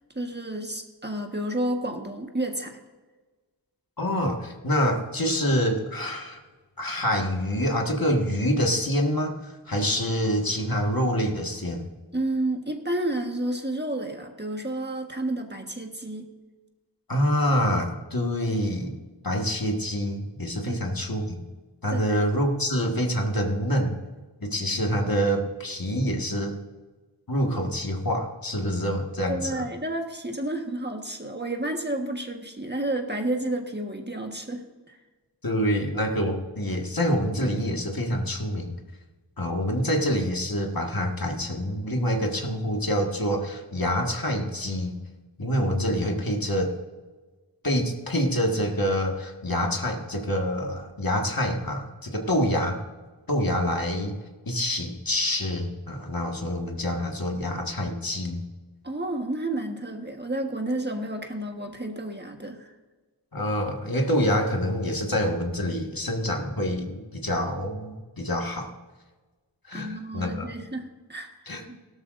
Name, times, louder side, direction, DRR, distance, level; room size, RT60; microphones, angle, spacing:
voice 1, 0.1-2.8 12.1-16.3 20.7-20.8 21.9-22.2 29.3-35.0 58.8-62.7 69.7-71.3 71.7-71.9, right 1 dB, 25° right, 3 dB, 1.5 m, -31 dB
voice 2, 4.0-6.4 6.8-11.9 17.1-18.9 19.2-21.4 21.8-24.0 24.4-26.6 27.3-29.7 35.4-38.8 39.4-45.0 45.4-46.7 47.6-52.8 53.3-54.2 54.5-58.4 63.3-68.7 69.7-70.5 71.5-71.9, equal, 50° left, 1 dB, 1.8 m, -26 dB
17.0 x 13.0 x 2.6 m, 1.3 s
wide cardioid pair, 50°, 43 cm